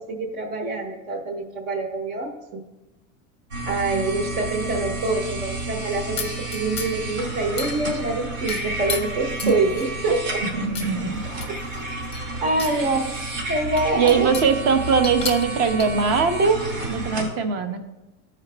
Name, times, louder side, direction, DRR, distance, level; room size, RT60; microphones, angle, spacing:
voice 1, 0.0-2.3 3.7-10.4 12.4-13.1 13.5-14.3, right 2 dB, 65° right, 0 dB, 1.3 m, -25 dB
sound 1, 3.5-17.3, right 2 dB, 90° right, 2.5 m, -31 dB
sound 2, 6.2-7.1 7.6-8.1 8.5-10.0 10.7-10.9 11.3-12.8 13.2-13.3 13.8-14.6 15.0-15.9, left 5 dB, 15° left, 0.6 m, -33 dB
voice 2, 10.5-11.2 12.6-12.9 13.9-16.6 16.9-17.8, right 5 dB, 35° right, 7 dB, 0.7 m, -21 dB
14.0 x 4.9 x 2.2 m, 1.0 s
supercardioid pair, 165°, 37 cm